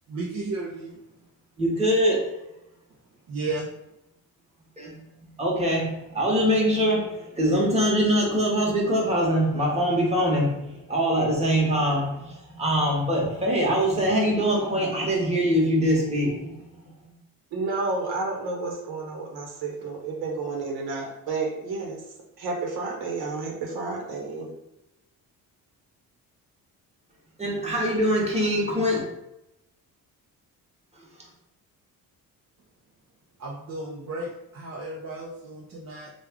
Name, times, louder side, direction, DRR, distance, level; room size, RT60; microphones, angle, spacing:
voice 1, 0.1-1.0 3.3-3.7 33.4-36.1, right 2 dB, 45° right, -3 dB, 0.6 m, -33 dB
voice 2, 1.6-2.3 4.8-5.0 5.4-16.9 27.4-29.0, equal, 15° right, -3 dB, 1.1 m, -23 dB
voice 3, 17.5-22.0 22.4-24.5, right 3 dB, 85° right, 0 dB, 1.0 m, -31 dB
3.4 x 2.4 x 3.5 m, 0.85 s
cardioid pair, 115°, 37 cm